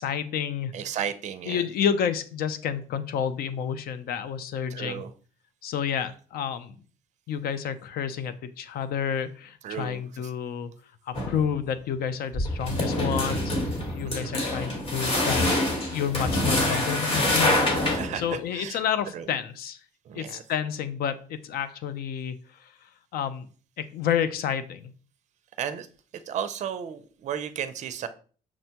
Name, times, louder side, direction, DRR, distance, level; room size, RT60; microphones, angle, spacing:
voice 1, 0.0-0.7 1.5-5.0 5.6-6.8 7.3-10.7 11.1-19.8 20.1-22.7 23.1-23.5 23.8-24.9, left 8 dB, 65° left, 12 dB, 0.5 m, -30 dB
voice 2, 0.7-1.6 4.7-5.1 9.6-10.0 14.0-14.4 17.9-18.8 19.1-19.2 20.1-20.4 25.6-25.9 26.3-28.1, right 9 dB, 45° right, 11 dB, 0.4 m, -34 dB
sound 1, 11.1-11.5 12.3-18.3, left 1 dB, 35° left, 1.2 m, -26 dB
6.0 x 2.1 x 2.8 m, 0.41 s
cardioid pair, 110°, 17 cm